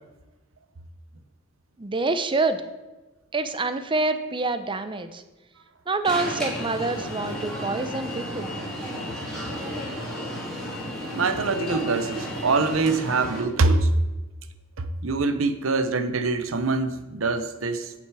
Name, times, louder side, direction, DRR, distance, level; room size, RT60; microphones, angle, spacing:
voice 1, 1.8-2.6 3.3-5.2 5.9-8.5, right 3 dB, 25° right, 10 dB, 0.6 m, -26 dB
Alarm, 6.0-13.4, equal, ahead, 2.6 m, -33 dB
voice 2, 11.1-13.9 14.8-17.9, right 3 dB, 70° right, 10 dB, 0.8 m, -24 dB
8.8 x 7.8 x 4.8 m, 1.1 s
head